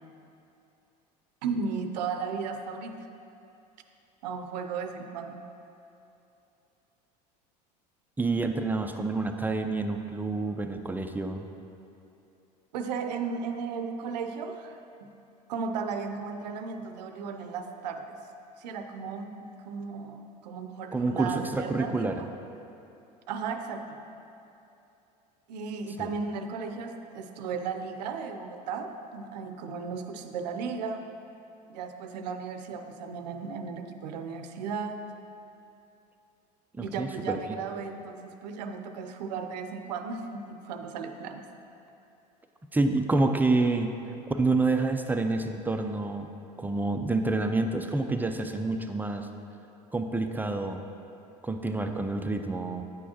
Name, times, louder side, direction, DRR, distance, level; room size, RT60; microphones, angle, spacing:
voice 1, 1.4-3.1 4.2-5.5 12.7-15.1 15.5-18.2 18.6-22.3 23.3-24.0 25.5-31.1 31.7-35.0 36.8-41.4, right 5 dB, 75° right, 6 dB, 0.6 m, -35 dB
voice 2, 8.2-11.4 20.9-22.2 26.0-26.1 36.7-37.4 42.7-43.9 44.3-46.3 46.6-49.3 49.9-50.8 51.4-52.8, right 3 dB, 10° right, 5 dB, 0.4 m, -28 dB
9.0 x 6.2 x 2.9 m, 2.8 s
hypercardioid pair, 80°, 21 cm